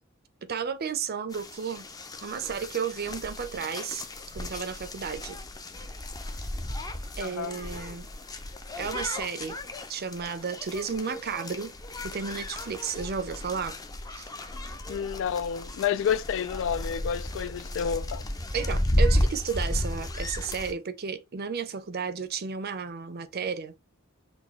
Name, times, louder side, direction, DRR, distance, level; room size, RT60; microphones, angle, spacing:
voice 1, 0.4-1.9 2.2-4.0 4.3-5.4 7.2-8.1 8.8-9.6 9.9-11.7 12.0-13.8 14.1-14.3 18.5-23.7, right 6 dB, 50° right, 0.6 m, -33 dB
sound 1, 1.3-20.7, left 1 dB, 20° left, 0.6 m, -33 dB
voice 2, 7.2-7.6 14.9-18.2, left 8 dB, 65° left, 0.3 m, -29 dB
6.1 x 2.3 x 3.1 m
head